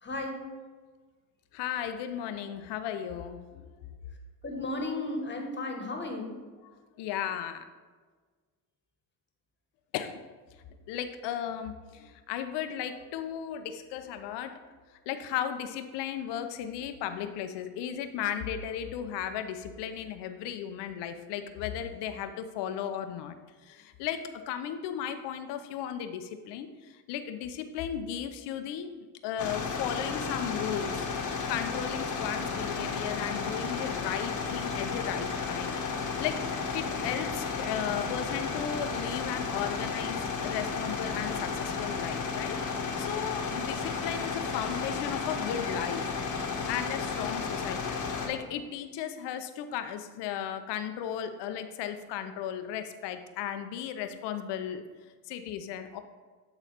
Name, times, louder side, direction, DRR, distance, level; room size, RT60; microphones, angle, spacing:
voice 1, 0.0-0.3 4.4-6.3, left 2 dB, 25° left, 2 dB, 1.6 m, -34 dB
voice 2, 1.5-3.7 6.6-6.7 7.0-7.6 9.9-10.2 10.9-14.6 15.1-23.3 23.6-28.9 29.2-31.1 31.5-35.8 36.2-36.4 36.7-42.6 43.0-46.0 46.7-48.0 48.3-54.8 55.3-56.0, left 9 dB, 75° left, 9 dB, 0.7 m, -35 dB
sound 1, 29.4-48.3, left 5 dB, 45° left, 1.2 m, -33 dB
8.2 x 3.9 x 4.3 m, 1.4 s
supercardioid pair, 70°, 42 cm